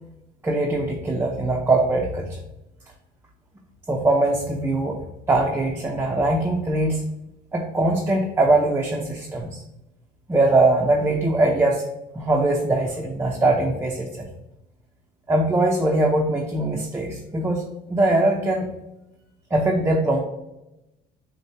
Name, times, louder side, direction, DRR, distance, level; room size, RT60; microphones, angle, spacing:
voice 1, 0.4-2.4 3.9-5.0 5.3-7.0 7.5-9.6 10.3-11.9 12.1-14.3 15.3-17.6 17.9-18.7 19.5-20.2, right 2 dB, 15° right, 0 dB, 0.5 m, -21 dB
6.2 x 2.2 x 2.8 m, 0.92 s
cardioid pair, 110°, 17 cm